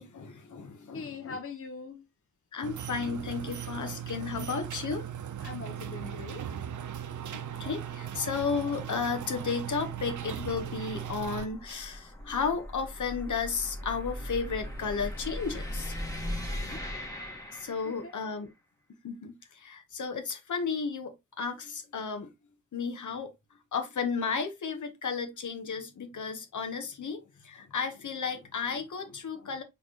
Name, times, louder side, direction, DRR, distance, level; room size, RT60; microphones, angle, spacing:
voice 1, 0.0-1.4 2.5-5.1 7.6-15.9 17.5-18.5 18.9-22.3 22.7-23.3 23.7-29.6, left 5 dB, 65° left, 1.2 m, -33 dB
voice 2, 0.9-2.0 5.4-6.5 16.2-16.3 16.6-16.9 17.8-18.1, left 4 dB, 45° left, 0.8 m, -42 dB
sound 1, 2.6-11.5, right 9 dB, 65° right, 0.7 m, -38 dB
sound 2, 6.9-18.3, equal, 10° left, 1.6 m, -40 dB
4.2 x 3.5 x 2.9 m
cardioid pair, 65°, 32 cm